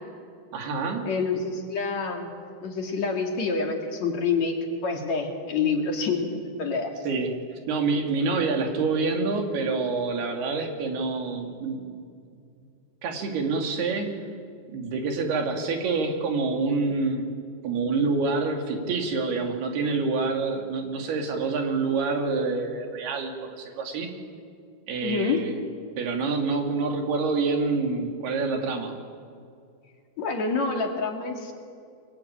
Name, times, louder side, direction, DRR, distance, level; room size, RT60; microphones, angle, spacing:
voice 1, 0.5-1.1 7.0-7.3 7.7-12.0 13.0-14.2 14.7-17.3 17.6-24.1 24.9-25.6 26.0-28.9, right 4 dB, 85° right, 4 dB, 4.6 m, -27 dB
voice 2, 1.0-2.3 2.6-6.9 25.0-25.4 30.2-31.5, left 4 dB, 50° left, 3 dB, 3.2 m, -27 dB
28.5 x 23.0 x 8.9 m, 2.3 s
omnidirectional pair, 4.4 m